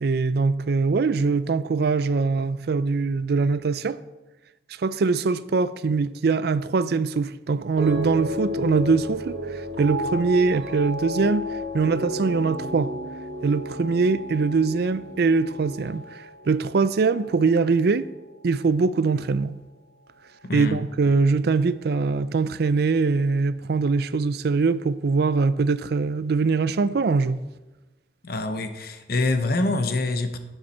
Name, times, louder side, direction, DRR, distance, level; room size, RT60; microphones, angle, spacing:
voice 1, 0.0-4.0 4.8-11.5 11.7-12.9 13.4-18.1 18.4-19.5 20.5-27.4, right 4 dB, 60° right, 0.4 m, -22 dB
sound 1, 7.8-18.1 18.4-19.0, equal, 80° right, 1.7 m, -33 dB
voice 2, 20.4-20.8 28.2-30.4, left 2 dB, 60° left, 0.9 m, -25 dB
11.0 x 8.9 x 4.3 m
head